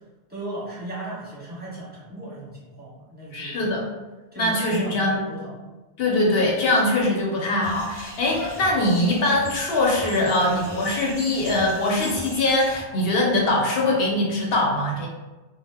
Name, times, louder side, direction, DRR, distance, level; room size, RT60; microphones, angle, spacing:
voice 1, 0.3-3.6 4.3-5.5, right 1 dB, 10° right, -8 dB, 0.8 m, -36 dB
voice 2, 3.3-3.8 4.4-5.2 6.0-15.1, left 2 dB, 65° left, -2 dB, 0.8 m, -22 dB
sound 1, 7.6-12.8, equal, 20° left, 0.5 m, -40 dB
sound 2, 8.5-9.5 9.9-12.7 13.4-13.5, right 1 dB, 40° right, 0.5 m, -43 dB
2.0 x 2.0 x 3.4 m, 1.2 s
omnidirectional pair, 1.1 m